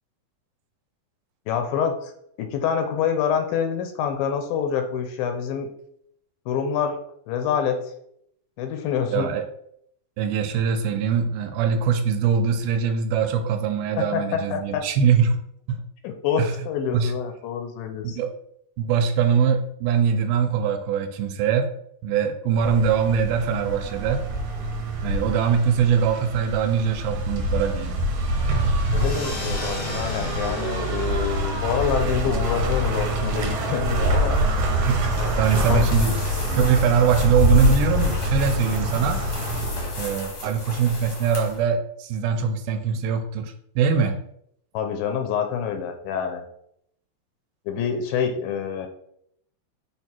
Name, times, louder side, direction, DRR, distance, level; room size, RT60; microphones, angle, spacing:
voice 1, 1.5-2.1 2.4-5.7 6.5-7.0 7.3-7.8 8.6-9.3 14.0-14.9 16.0-18.2 28.9-34.4 35.2-35.8 44.7-46.4 47.7-48.9, left 7 dB, 85° left, 6 dB, 2.4 m, -26 dB
voice 2, 9.1-9.4 10.2-15.4 15.7-15.8 16.4-16.5 16.9-17.1 18.0-18.3 18.8-21.7 22.0-24.3 25.0-27.9 34.8-35.0 35.4-39.3 40.0-44.2, right 6 dB, 90° right, 5 dB, 2.5 m, -22 dB
sound 1, 22.6-40.8, right 1 dB, 70° right, 2.2 m, -25 dB
sound 2, 28.9-34.0, left 3 dB, 65° left, 1.5 m, -37 dB
sound 3, 35.0-41.6, left 2 dB, 50° left, 1.2 m, -35 dB
6.5 x 3.3 x 4.4 m, 0.71 s
omnidirectional pair, 4.2 m